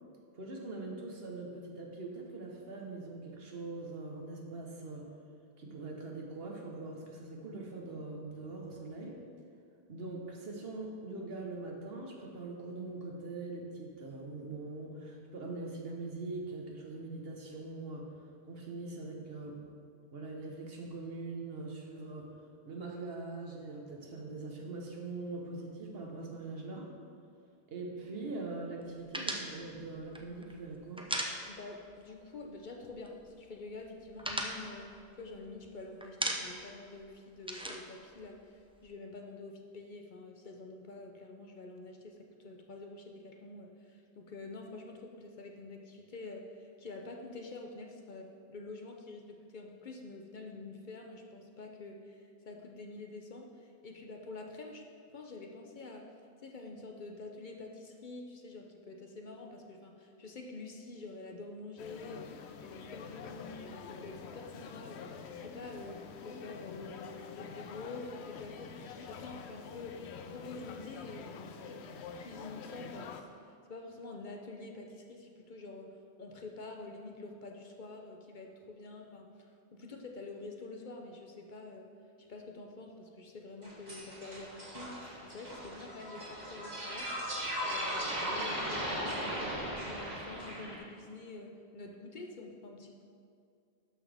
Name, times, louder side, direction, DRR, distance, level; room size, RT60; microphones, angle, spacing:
voice 1, 0.3-5.1 5.6-9.2 9.9-18.1 18.4-19.6 20.1-22.3 22.6-26.9 27.7-31.0, right 3 dB, 65° right, 0 dB, 1.3 m, -42 dB
sound 1, 29.1-31.9 32.2-32.4 32.7-33.3 33.7-35.7 36.0-36.8 37.0-38.8, right 1 dB, 10° right, 0.4 m, -38 dB
voice 2, 31.5-54.9 55.1-56.1 56.4-62.4 62.6-71.9 72.2-81.9 82.2-85.0 85.2-87.1 87.6-93.0, left 3 dB, 50° left, 2 dB, 0.8 m, -47 dB
sound 2, 61.8-73.2, left 5 dB, 85° left, 0.9 m, -47 dB
sound 3, 83.6-90.8, equal, 40° right, 1.9 m, -37 dB
12.0 x 5.9 x 3.4 m, 2.4 s
omnidirectional pair, 1.1 m